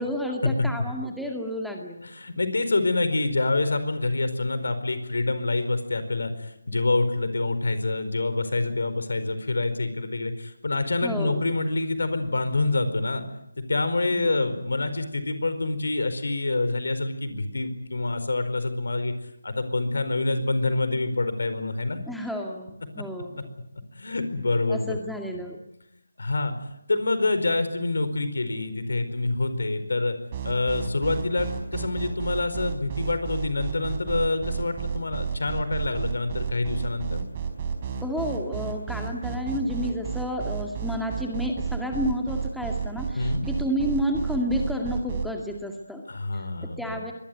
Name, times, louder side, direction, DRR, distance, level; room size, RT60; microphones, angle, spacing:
voice 1, 0.0-2.0 11.0-11.4 14.1-14.4 22.1-23.4 24.7-25.6 38.0-46.0 46.6-47.1, equal, ahead, 1 dB, 2.1 m, -30 dB
voice 2, 2.0-13.2 13.7-19.1 19.4-22.0 23.9-25.0 25.3-25.4 26.2-26.5 26.9-30.2 30.4-37.2 43.1-43.4 46.1-47.0, left 2 dB, 65° left, 11 dB, 4.7 m, -26 dB
sound 1, 30.3-45.3, right 6 dB, 30° right, 4.7 m, -31 dB
24.0 x 20.5 x 9.4 m, 0.82 s
figure-of-eight pair, 155°, 0 cm